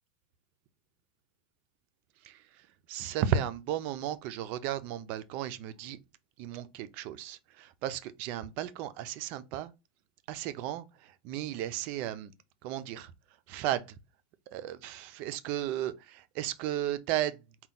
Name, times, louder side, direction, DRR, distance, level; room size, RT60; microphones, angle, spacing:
voice 1, 2.9-6.0 6.4-9.7 10.3-10.9 11.2-12.3 12.6-13.1 13.5-13.9 14.5-17.3, right 10 dB, 40° right, 0.4 m, -34 dB
4.2 x 2.2 x 3.9 m
supercardioid pair, 170°, 4 cm